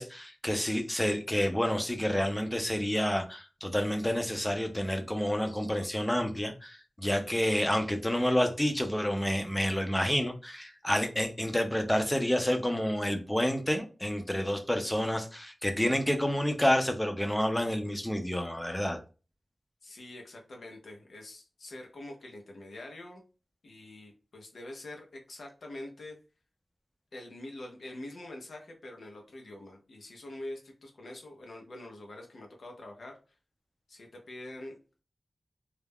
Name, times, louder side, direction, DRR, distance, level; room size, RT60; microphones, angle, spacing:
voice 1, 0.0-19.0, equal, 10° left, 0.5 m, -29 dB
voice 2, 19.8-23.2 23.6-26.2 27.1-33.4 33.9-34.8, left 1 dB, 80° left, 0.6 m, -45 dB
2.3 x 2.1 x 3.4 m
wide cardioid pair, 80°, 0 cm